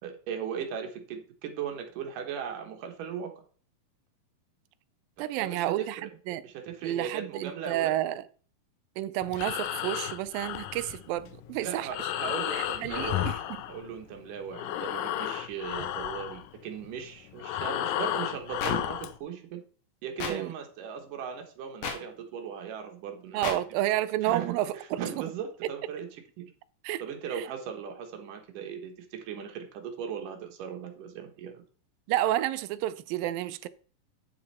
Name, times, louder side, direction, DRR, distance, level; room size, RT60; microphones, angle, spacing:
voice 1, 0.0-3.3 5.4-6.1 6.4-7.9 11.6-13.3 13.7-19.6 20.0-23.6 24.2-26.5 27.0-31.6, right 7 dB, 70° right, 2.9 m, -38 dB
voice 2, 5.2-6.4 6.8-8.2 9.0-12.1 12.5-13.6 20.3-20.5 23.3-25.2 26.8-27.0 27.3-27.5 32.1-33.7, right 14 dB, 90° right, 2.4 m, -30 dB
Breathing, 9.2-14.2 14.5-19.2, left 12 dB, 80° left, 2.4 m, -33 dB
sound 1, 18.6-18.7 20.2-20.3 21.8-22.0 23.4-23.6, left 5 dB, 50° left, 2.0 m, -32 dB
9.1 x 6.7 x 4.3 m
omnidirectional pair, 4.0 m